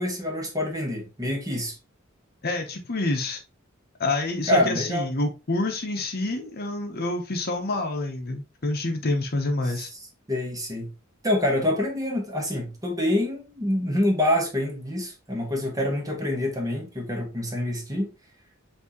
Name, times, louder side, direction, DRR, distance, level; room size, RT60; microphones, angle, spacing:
voice 1, 0.0-1.8 4.5-5.1 9.7-9.9 10.3-10.9 11.2-18.1, left 1 dB, 15° right, 1.2 m, -26 dB
voice 2, 2.4-3.4 4.0-9.9, left 2 dB, 50° left, 0.9 m, -27 dB
6.0 x 2.8 x 3.0 m
head